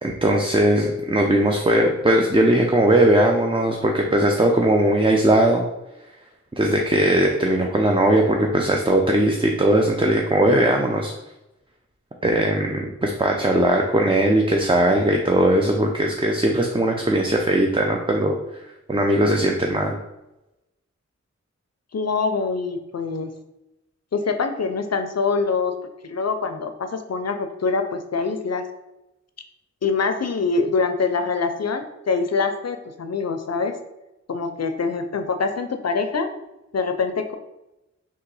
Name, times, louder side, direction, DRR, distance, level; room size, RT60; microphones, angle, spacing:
voice 1, 0.0-5.6 6.6-11.1 12.2-18.4 18.9-20.0, right 1 dB, 20° right, 1 dB, 0.5 m, -19 dB
voice 2, 21.9-23.3 24.1-25.7 26.0-28.7 29.8-33.8 34.3-36.3 36.7-37.3, left 4 dB, 60° left, 7 dB, 0.5 m, -24 dB
3.6 x 2.9 x 4.7 m, 0.94 s
wide cardioid pair, 45°, 29 cm